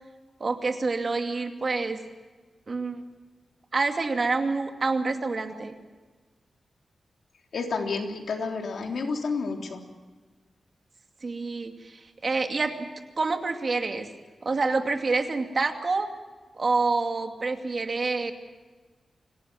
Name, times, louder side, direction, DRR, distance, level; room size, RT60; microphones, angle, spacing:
voice 1, 0.4-2.0 2.7-3.0 3.7-5.7 11.2-12.7 13.2-14.1 14.4-16.1 16.6-18.3, right 3 dB, 45° right, 5 dB, 2.5 m, -27 dB
voice 2, 7.5-9.8, left 4 dB, 80° left, 2 dB, 3.6 m, -30 dB
25.5 x 18.0 x 7.6 m, 1.3 s
wide cardioid pair, 110°, 0 cm